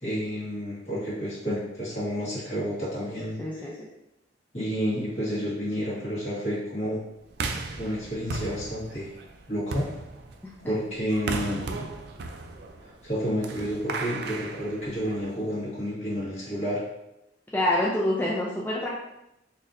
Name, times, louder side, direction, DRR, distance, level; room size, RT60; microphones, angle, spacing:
voice 1, 0.0-3.4 4.5-7.0 7.8-9.1 9.5-9.9 10.6-11.7 12.8-16.8, equal, 40° left, -8 dB, 1.5 m, -30 dB
voice 2, 3.4-3.9 10.4-10.7 17.5-18.9, left 1 dB, 10° left, -5 dB, 0.4 m, -27 dB
sound 1, 7.3-15.4, right 3 dB, 60° right, 0.4 m, -36 dB
4.1 x 2.6 x 2.5 m, 0.87 s
head